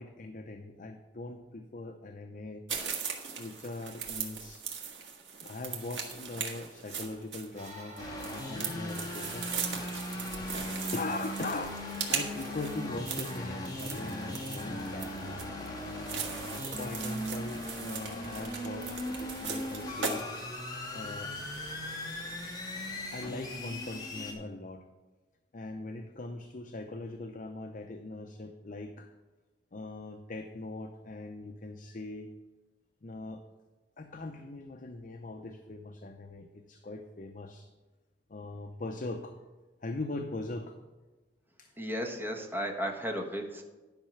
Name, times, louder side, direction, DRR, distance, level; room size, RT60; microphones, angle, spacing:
voice 1, 0.0-2.6 3.4-4.6 5.4-8.0 8.5-11.8 12.1-15.4 16.7-20.2 20.9-21.3 23.1-24.8 25.5-29.1 29.7-32.3 33.0-33.4 34.0-37.7 38.3-39.4 39.8-40.8 41.6-41.7, left 2 dB, 50° left, 5 dB, 0.6 m, -41 dB
sound 1, 2.7-20.2, right 6 dB, 80° right, 1.6 m, -39 dB
sound 2, 7.5-14.5, equal, 45° right, 3.4 m, -53 dB
sound 3, 8.0-24.3, left 1 dB, 25° left, 2.2 m, -39 dB
voice 2, 41.8-43.6, equal, 10° right, 2 dB, 1.3 m, -34 dB
10.5 x 5.6 x 6.5 m, 1.2 s
head